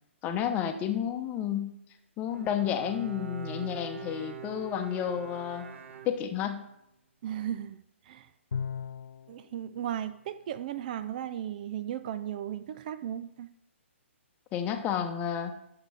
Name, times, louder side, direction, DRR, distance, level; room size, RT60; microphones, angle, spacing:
voice 1, 0.2-1.7 2.2-5.7 6.0-6.6 14.5-15.5, left 9 dB, 20° left, 6 dB, 0.9 m, -31 dB
Bowed string instrument, 2.3-6.7, right 4 dB, 75° right, 1.1 m, -43 dB
voice 2, 7.2-7.8 8.1-8.3 9.3-13.5, right 10 dB, 40° right, 13 dB, 0.4 m, -36 dB
Bowed string instrument 2, 8.5-9.4, left 6 dB, 80° left, 0.4 m, -35 dB
11.0 x 6.8 x 3.4 m, 0.79 s
hypercardioid pair, 135°, 7 cm